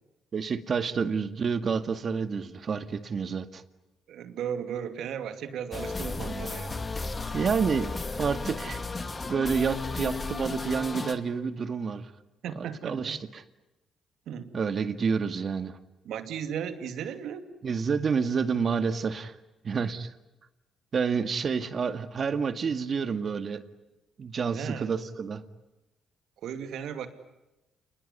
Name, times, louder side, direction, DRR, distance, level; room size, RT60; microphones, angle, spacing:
voice 1, 0.3-3.6 7.3-7.9 8.2-8.8 9.3-12.1 12.6-13.4 14.5-15.8 17.6-19.3 19.6-20.1 20.9-23.6 24.2-25.4, right 5 dB, 45° right, 11 dB, 2.0 m, -29 dB
voice 2, 4.1-6.8 12.4-13.2 14.3-14.5 16.0-17.5 24.5-24.9 26.4-27.1, right 8 dB, 80° right, 9 dB, 2.6 m, -36 dB
sound 1, 5.7-11.2, left 3 dB, 30° left, 2.5 m, -34 dB
29.0 x 21.0 x 9.7 m, 0.99 s
cardioid pair, 90°, 0 cm